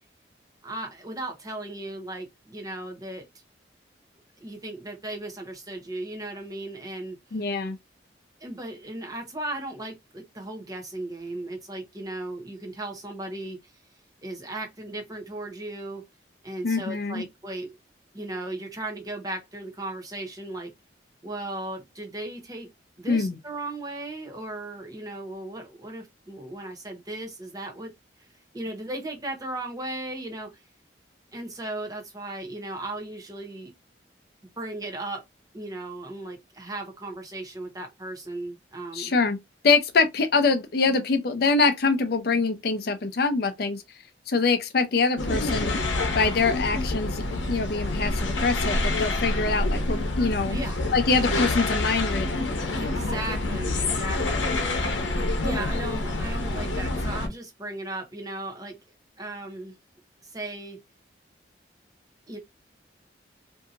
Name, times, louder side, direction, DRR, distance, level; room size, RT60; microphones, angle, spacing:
voice 1, 0.6-3.2 4.4-7.2 8.4-13.7 14.2-16.0 16.4-17.8 18.1-20.7 21.2-22.7 23.0-27.9 28.5-30.5 31.3-33.7 34.6-35.2 35.5-39.1 50.5-50.8 52.7-58.8 59.2-59.7 60.2-60.8 62.3-62.4, right 2 dB, 20° right, 0.7 m, -36 dB
voice 2, 7.3-7.8 16.6-17.2 23.1-23.4 38.9-39.4 39.6-43.8 44.3-45.8 46.1-50.6 50.9-52.5, left 4 dB, 55° left, 0.5 m, -24 dB
sound 1, 45.2-57.3, left 2 dB, 85° left, 0.8 m, -27 dB
2.7 x 2.6 x 2.4 m
head